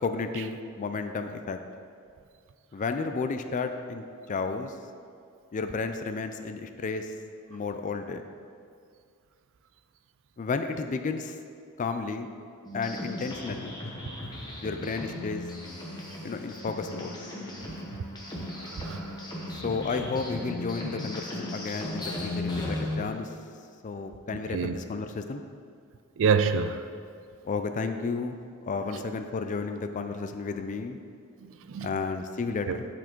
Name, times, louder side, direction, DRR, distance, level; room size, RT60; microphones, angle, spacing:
voice 1, 0.0-1.6 2.7-4.7 5.5-7.1 7.5-8.2 10.4-11.4 11.8-12.3 12.7-13.7 14.6-15.4 16.2-17.1 19.6-23.3 23.8-25.4 27.4-28.4 28.7-31.0 31.8-32.9, left 4 dB, 35° left, 7 dB, 0.3 m, -32 dB
sound 1, 12.6-23.0, left 1 dB, 20° left, 1.0 m, -36 dB
voice 2, 18.6-19.2 24.5-24.8 26.2-26.8 31.4-31.9 32.7-32.8, right 5 dB, 60° right, 9 dB, 0.4 m, -27 dB
8.2 x 4.4 x 4.5 m, 2.3 s
head